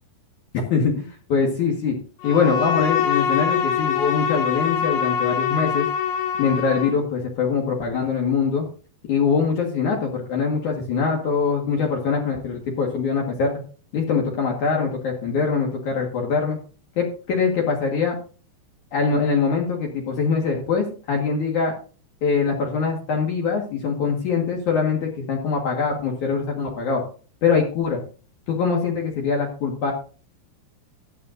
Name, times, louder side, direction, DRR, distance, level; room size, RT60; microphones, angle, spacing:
voice 1, 0.7-2.0 2.2-5.9 6.4-8.7 9.1-13.6 13.9-16.6 17.0-18.1 18.9-21.7 22.2-27.0 27.4-28.0 28.5-29.9, left 5 dB, 55° left, 0 dB, 2.5 m, -23 dB
Bowed string instrument, 2.2-7.0, left 8 dB, 75° left, 3.2 m, -24 dB
14.5 x 11.0 x 2.6 m, 0.37 s
omnidirectional pair, 5.2 m